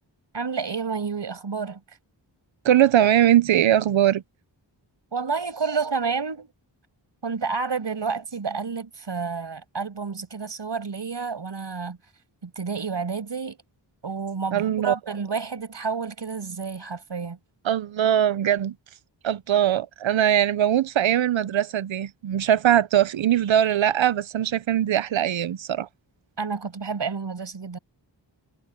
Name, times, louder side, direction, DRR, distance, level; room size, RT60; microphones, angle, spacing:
voice 1, 0.3-1.8 5.1-6.5 7.2-12.0 12.4-13.6 14.0-17.4 26.4-27.8, right 5 dB, 70° right, 6.4 m, -30 dB
voice 2, 2.6-4.2 14.5-14.9 17.6-18.8 19.2-25.9, right 11 dB, 85° right, 0.8 m, -21 dB
wide cardioid pair, 80°, 45 cm